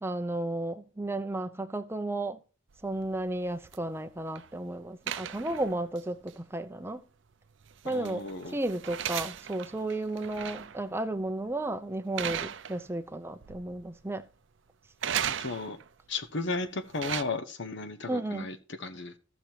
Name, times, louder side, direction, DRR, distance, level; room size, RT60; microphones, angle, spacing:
voice 1, 0.0-2.4 2.8-7.0 7.8-8.2 8.5-14.2 18.1-18.5, right 1 dB, 10° right, 0.5 m, -33 dB
sound 1, 2.7-4.5 5.1-6.0 6.3-6.4 7.6-10.8 11.2-11.5 12.2-13.2 13.4-14.0 15.0-15.9 16.7-17.2, right 9 dB, 60° right, 0.5 m, -37 dB
voice 2, 7.8-8.6 15.3-15.8 16.1-19.2, left 3 dB, 55° left, 1.0 m, -35 dB
15.0 x 6.1 x 2.9 m
head